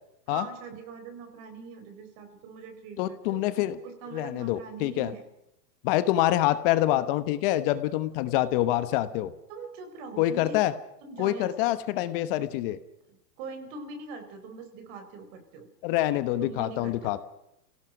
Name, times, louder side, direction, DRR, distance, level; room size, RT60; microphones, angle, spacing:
voice 1, 0.3-3.4 3.8-5.2 9.5-10.6 11.0-11.7 13.4-15.7 16.4-17.1, right 4 dB, 35° right, 6 dB, 4.2 m, -42 dB
voice 2, 3.0-3.8 4.1-5.1 5.8-9.3 10.2-10.7 11.2-12.8 15.8-17.2, left 14 dB, 35° left, 12 dB, 1.2 m, -26 dB
28.5 x 17.5 x 5.2 m, 0.82 s
hypercardioid pair, 145°, 48 cm